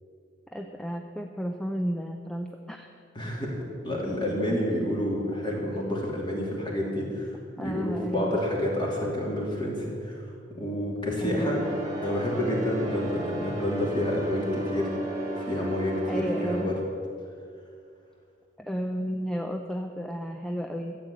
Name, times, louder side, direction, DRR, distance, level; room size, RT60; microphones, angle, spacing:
voice 1, 0.5-2.9 7.6-8.4 11.2-11.7 16.0-16.8 18.6-21.0, equal, 5° left, 3 dB, 0.5 m, -32 dB
voice 2, 3.1-3.6 3.8-10.2 10.5-11.6 12.0-14.9 15.5-16.7, left 1 dB, 25° left, -2 dB, 2.8 m, -29 dB
sound 1, 11.4-16.6, right 1 dB, 15° right, 2.1 m, -34 dB
13.5 x 8.2 x 8.5 m, 2.3 s
head